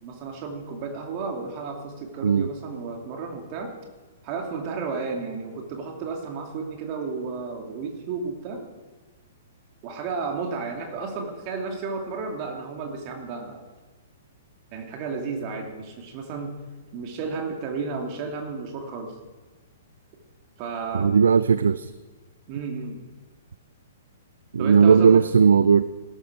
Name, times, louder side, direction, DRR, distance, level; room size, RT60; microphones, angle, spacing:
voice 1, 0.0-3.7 4.2-8.6 9.8-13.6 14.7-16.5 16.9-19.1 20.6-21.2 22.5-23.0 24.6-25.2, right 4 dB, 35° right, 2 dB, 2.7 m, -32 dB
voice 2, 20.9-21.9 24.5-25.8, right 6 dB, 70° right, 17 dB, 0.4 m, -17 dB
16.5 x 13.0 x 4.8 m, 1.3 s
figure-of-eight pair, 115°, 0 cm